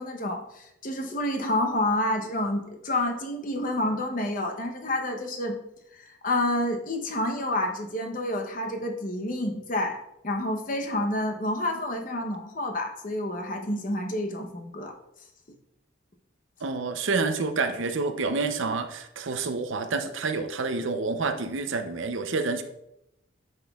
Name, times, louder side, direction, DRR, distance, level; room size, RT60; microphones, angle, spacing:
voice 1, 0.0-5.6 6.0-14.9, left 1 dB, 40° left, 3 dB, 0.8 m, -29 dB
voice 2, 16.6-22.6, right 4 dB, 70° right, 8 dB, 0.6 m, -28 dB
9.3 x 6.0 x 2.4 m, 0.84 s
head